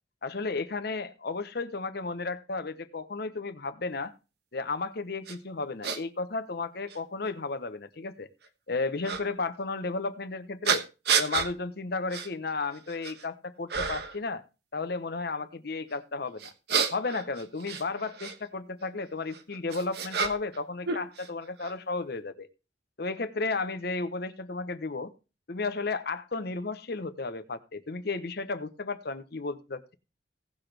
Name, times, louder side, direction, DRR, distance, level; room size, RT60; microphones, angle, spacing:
voice 1, 0.2-4.1 4.5-8.3 8.7-10.8 11.2-14.4 14.7-16.5 16.9-22.5 23.0-25.1 25.5-29.9, left 3 dB, 60° left, 11 dB, 0.9 m, -33 dB
sound 1, 5.3-5.4 5.8-6.0 6.9-7.0 9.0-9.2 10.6-11.5 12.1-12.3 12.7-13.2 13.7-14.2 16.4-18.4 19.3-20.6 20.8-21.7, right 6 dB, 60° right, 1.1 m, -30 dB
17.0 x 6.1 x 3.3 m, 0.30 s
head